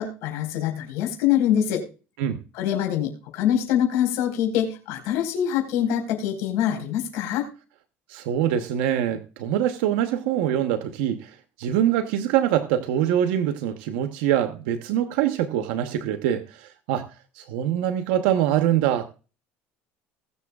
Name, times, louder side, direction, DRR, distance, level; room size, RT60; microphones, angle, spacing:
voice 1, 0.0-1.8 2.5-7.4, left 10 dB, 75° left, 4.6 m, -24 dB
voice 2, 8.1-17.1 17.4-19.1, right 11 dB, 85° right, 0.9 m, -24 dB
20.5 x 6.9 x 2.4 m
cardioid pair, 125°, 5 cm